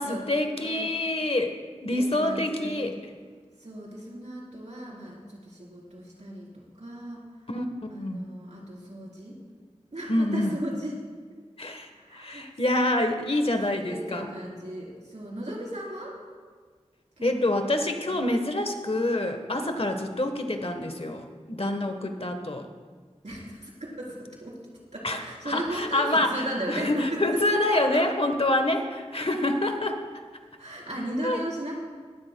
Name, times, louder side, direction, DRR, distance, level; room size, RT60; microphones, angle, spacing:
voice 1, 0.0-1.6 1.8-3.0 7.5-7.6 7.9-8.3 10.1-10.5 11.6-14.3 17.2-22.7 25.0-30.0 31.2-31.4, left 1 dB, 55° left, 6 dB, 1.1 m, -27 dB
voice 2, 0.6-0.9 1.9-3.0 3.6-7.2 7.9-9.4 9.9-10.9 11.9-12.4 13.4-13.5 13.8-16.1 17.2-17.5 18.0-18.2 19.6-19.9 23.2-24.6 24.9-28.0 30.6-31.8, right 1 dB, 75° right, -4 dB, 3.7 m, -36 dB
19.0 x 12.5 x 2.2 m, 1.5 s
wide cardioid pair, 40°, 12 cm